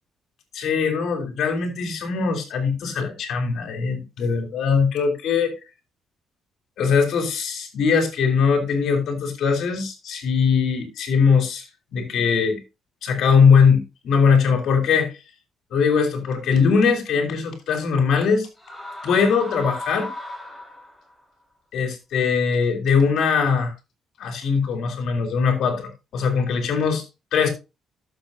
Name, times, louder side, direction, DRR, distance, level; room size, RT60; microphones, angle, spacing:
voice 1, 0.5-5.5 6.8-12.6 13.0-15.1 15.7-18.5 19.0-20.1 21.7-23.7 24.2-27.0 27.3-27.5, left 5 dB, 75° left, 3.2 m, -21 dB
sound 1, 18.6-21.2, left 1 dB, 10° left, 4.7 m, -36 dB
12.5 x 7.5 x 2.7 m
cardioid pair, 90°, 0 cm